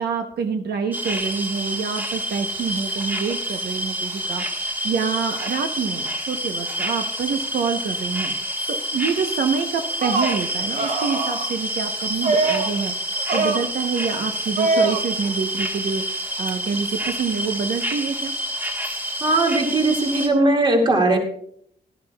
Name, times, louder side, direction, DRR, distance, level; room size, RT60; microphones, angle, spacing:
voice 1, 0.0-16.0 16.4-18.3, right 6 dB, 70° right, 6 dB, 0.9 m, -27 dB
sound 1, 0.9-20.3, equal, 10° right, 1.4 m, -28 dB
sound 2, 9.9-10.4 10.8-11.5 12.2-12.8 13.2-13.7 14.6-15.0, right 3 dB, 50° right, 2.0 m, -22 dB
voice 2, 19.2-21.2, right 2 dB, 25° right, 2 dB, 2.0 m, -19 dB
17.0 x 12.0 x 2.3 m, 0.66 s
wide cardioid pair, 180°, 17 cm